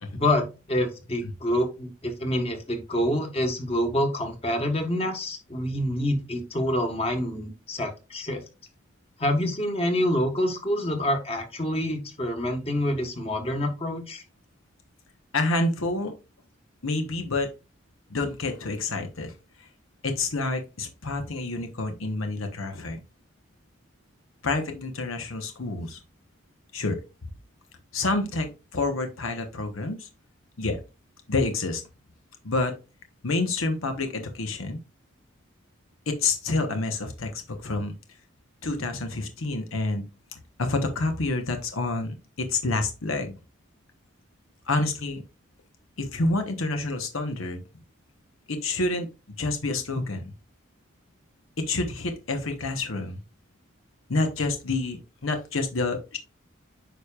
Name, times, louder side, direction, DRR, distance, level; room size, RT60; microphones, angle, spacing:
voice 1, 0.1-8.4 9.2-14.2, left 1 dB, 30° left, 4 dB, 1.4 m, -27 dB
voice 2, 15.3-16.1 16.8-17.5 18.1-19.3 19.6-19.7 20.0-23.0 24.4-26.0 26.7-27.0 27.9-30.1 30.6-30.8 31.3-31.8 32.4-32.7 33.2-34.8 36.1-37.9 38.6-40.0 40.6-43.4 44.7-45.2 46.0-47.6 48.5-49.1 49.4-50.3 51.6-53.2 54.1-56.2, left 2 dB, 85° left, 5 dB, 1.2 m, -28 dB
9.1 x 5.1 x 2.4 m, 0.29 s
head